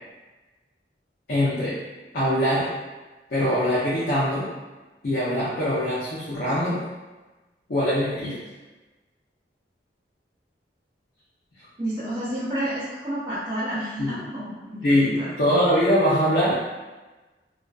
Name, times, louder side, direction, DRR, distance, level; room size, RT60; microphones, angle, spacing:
voice 1, 1.3-1.8 2.1-2.7 3.3-4.5 5.0-6.8 7.7-8.4 14.0-14.2 14.8-16.7, equal, 60° left, -10 dB, 0.6 m, -22 dB
voice 2, 11.8-15.6, right 1 dB, 25° right, -11 dB, 0.6 m, -30 dB
2.4 x 2.4 x 2.2 m, 1.2 s
head